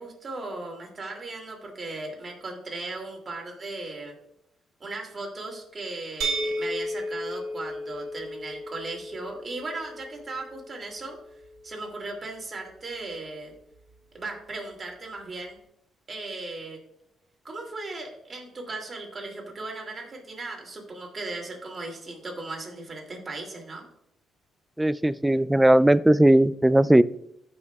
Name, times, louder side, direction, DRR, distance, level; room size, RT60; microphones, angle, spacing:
voice 1, 0.0-4.1 4.8-11.2 11.6-13.5 14.1-15.6 16.1-16.8 17.4-23.8, right 2 dB, 35° right, 0 dB, 2.5 m, -37 dB
sound 1, 6.2-12.0, equal, 85° right, 1.4 m, -34 dB
voice 2, 24.8-27.0, right 1 dB, 10° right, 16 dB, 0.3 m, -18 dB
15.0 x 5.3 x 2.3 m, 0.76 s
cardioid pair, 90°, 0 cm